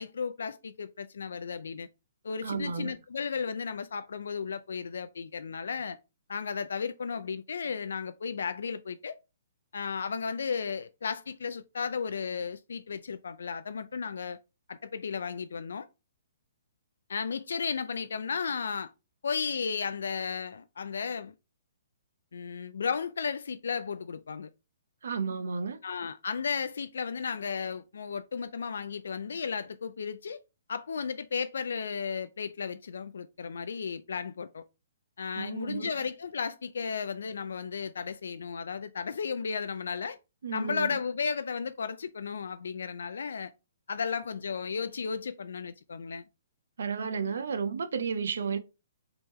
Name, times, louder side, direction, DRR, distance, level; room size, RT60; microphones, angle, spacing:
voice 1, 0.0-1.9 2.2-6.0 6.3-9.1 9.7-14.4 14.7-15.9 17.1-18.9 19.2-21.3 22.3-24.5 25.8-30.4 30.7-34.6 35.2-40.2 40.5-43.5 43.9-46.2, left 6 dB, 85° left, 0.3 m, -34 dB
voice 2, 2.4-2.9 25.0-25.8 35.4-35.9 40.4-41.0 46.8-48.6, right 5 dB, 75° right, 0.6 m, -32 dB
3.5 x 2.9 x 3.1 m
hypercardioid pair, 165°, 0 cm